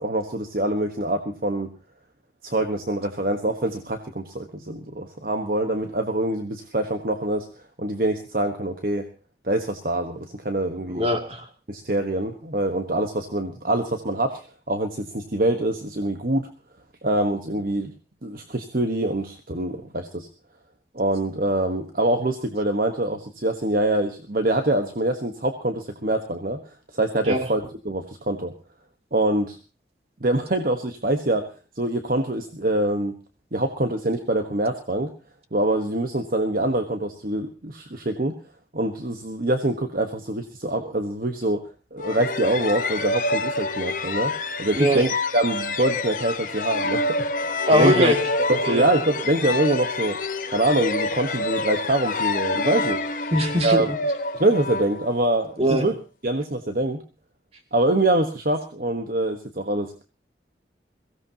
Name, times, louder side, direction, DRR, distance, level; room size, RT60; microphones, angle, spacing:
voice 1, 0.0-1.7 2.4-7.5 7.8-9.0 9.4-11.1 11.7-14.4 14.7-16.5 17.0-17.9 18.2-20.3 20.9-26.6 26.9-28.5 29.1-29.6 30.2-31.5 31.8-33.1 33.5-35.1 35.5-38.3 38.7-41.6 41.9-44.3 44.6-47.0 47.4-48.1 48.5-50.2 50.5-53.0 53.6-53.9 54.3-55.9 56.2-57.0 57.7-60.0, right 1 dB, 50° right, 6 dB, 1.3 m, -24 dB
voice 2, 10.8-11.5 27.3-27.5 44.8-45.0 47.7-48.2 48.6-48.9 53.3-54.0 55.6-55.9, equal, 35° right, 4 dB, 2.6 m, -21 dB
sound 1, 42.0-55.5, left 2 dB, 50° left, 1.1 m, -27 dB
22.5 x 16.5 x 2.9 m, 0.33 s
head